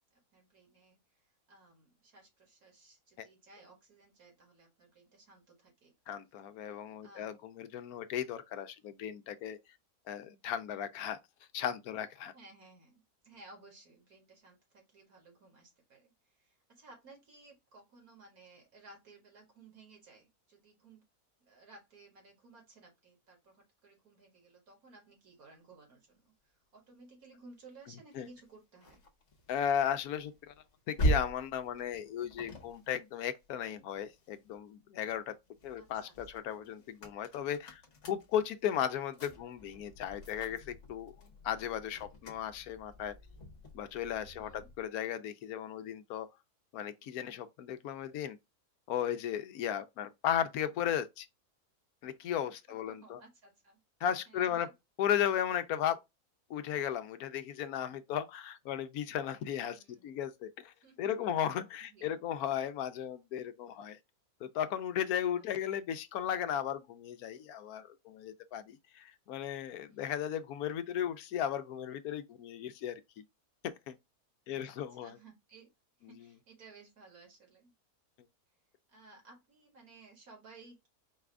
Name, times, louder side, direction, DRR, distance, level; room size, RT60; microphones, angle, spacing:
voice 1, 0.1-1.2 1.5-6.2 7.0-7.3 12.3-21.0 21.4-29.0 35.8-36.4 44.3-44.7 52.7-53.8 54.3-54.7 59.6-60.1 60.8-61.4 61.9-62.1 69.9-70.2 74.5-75.7 76.0-77.7 78.9-80.9, right 3 dB, 70° right, 2.2 m, -58 dB
voice 2, 6.1-9.6 10.1-11.2 11.5-12.3 28.1-28.3 29.5-30.5 30.9-35.3 35.6-41.1 41.4-43.1 43.7-46.3 46.7-48.4 48.9-51.3 52.0-53.2 54.0-54.7 55.0-56.0 56.5-64.0 64.4-73.0 73.6-74.0 74.5-75.2, left 9 dB, 80° left, 1.1 m, -35 dB
sound 1, 28.1-34.6 35.1-44.9, right 1 dB, 55° left, 1.2 m, -41 dB
4.8 x 2.4 x 3.3 m
omnidirectional pair, 1.6 m